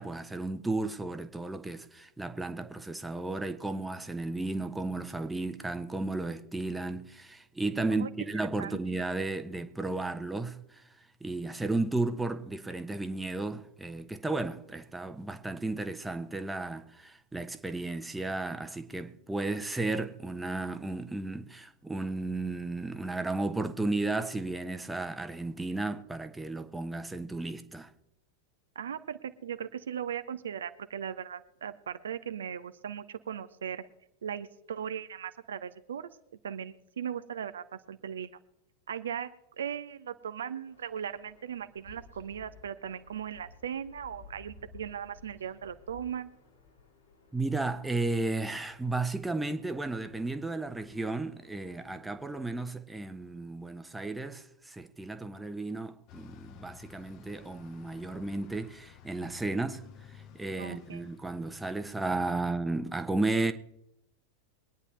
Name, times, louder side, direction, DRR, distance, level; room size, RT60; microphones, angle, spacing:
voice 1, 0.0-10.8 11.2-27.9 47.3-63.5, right 2 dB, 5° right, 1.0 m, -34 dB
voice 2, 28.8-33.8 34.2-36.1 36.4-38.3 38.9-39.3 39.6-46.3 60.6-61.0, right 8 dB, 65° right, 0.7 m, -38 dB
sound 1, 40.7-52.5, left 5 dB, 75° left, 4.1 m, -57 dB
Bus, 56.1-62.0, left 8 dB, 40° left, 1.0 m, -53 dB
23.5 x 9.8 x 3.3 m
figure-of-eight pair, 90°, 0 cm